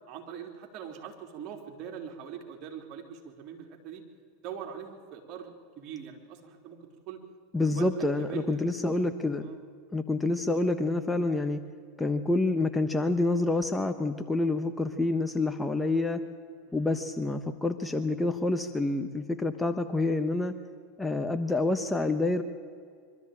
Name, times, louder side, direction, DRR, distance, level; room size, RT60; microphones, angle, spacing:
voice 1, 0.1-4.0 4.4-7.2 7.5-8.9 9.4-9.6 16.7-16.9, right 8 dB, 45° right, 2 dB, 3.6 m, -42 dB
voice 2, 7.5-9.5 9.9-11.6 12.0-16.2 16.7-20.5 21.0-22.4, left 2 dB, 10° left, 8 dB, 1.1 m, -27 dB
23.5 x 13.0 x 9.0 m, 2.2 s
hypercardioid pair, 95°, 0 cm